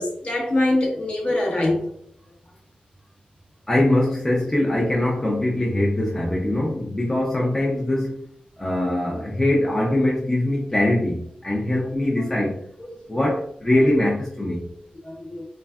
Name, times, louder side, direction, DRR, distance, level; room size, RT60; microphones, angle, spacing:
voice 1, 0.0-1.9 12.8-13.2 15.0-15.5, left 1 dB, 40° left, -1 dB, 0.7 m, -24 dB
voice 2, 3.7-8.2 8.6-12.6 13.1-14.6, left 1 dB, 15° left, -3 dB, 0.4 m, -22 dB
3.4 x 2.1 x 2.3 m, 0.66 s
wide cardioid pair, 155°, 3 cm